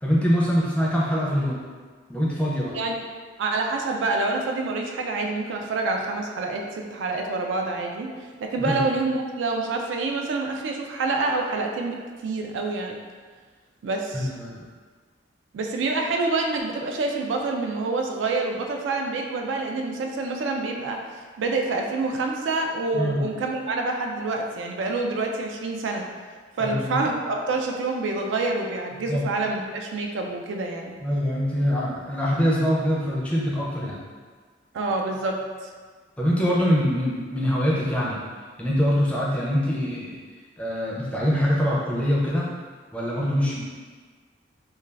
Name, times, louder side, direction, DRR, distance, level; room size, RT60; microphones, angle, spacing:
voice 1, 0.0-1.6 2.1-2.7 8.6-8.8 14.1-14.6 22.9-23.2 26.6-27.0 29.1-29.3 31.0-34.0 36.2-38.2 38.6-40.2 40.6-42.5 42.9-43.6, equal, 5° left, -5 dB, 0.4 m, -24 dB
voice 2, 3.4-8.1 8.4-13.0 13.8-14.3 15.5-26.0 26.6-31.0 34.7-35.4, right 3 dB, 80° right, 2 dB, 0.3 m, -27 dB
2.3 x 2.2 x 3.2 m, 1.5 s
head